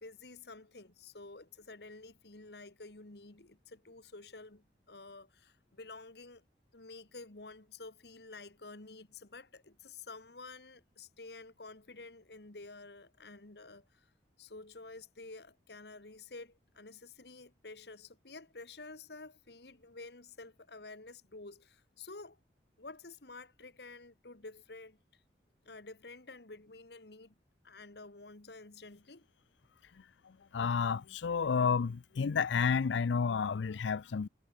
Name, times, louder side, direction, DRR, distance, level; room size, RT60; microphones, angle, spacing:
voice 1, 0.0-6.4 6.7-14.1 14.4-22.4 22.8-25.2 25.6-27.3 27.6-29.2, left 3 dB, 65° left, 1.7 m, -50 dB
voice 2, 30.2-34.3, left 6 dB, 85° left, 0.5 m, -31 dB
head